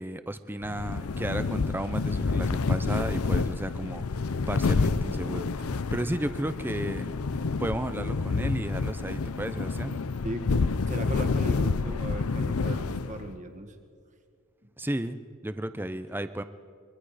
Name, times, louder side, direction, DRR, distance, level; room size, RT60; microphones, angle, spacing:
voice 1, 0.0-5.5 5.9-7.1 7.6-10.0 14.8-16.4, right 1 dB, 10° right, 11 dB, 0.6 m, -33 dB
sound 1, 0.6-13.4, left 4 dB, 90° left, 0.6 m, -29 dB
voice 2, 10.2-13.7, right 1 dB, 35° right, 6 dB, 1.8 m, -37 dB
25.0 x 24.0 x 5.0 m, 2.2 s
head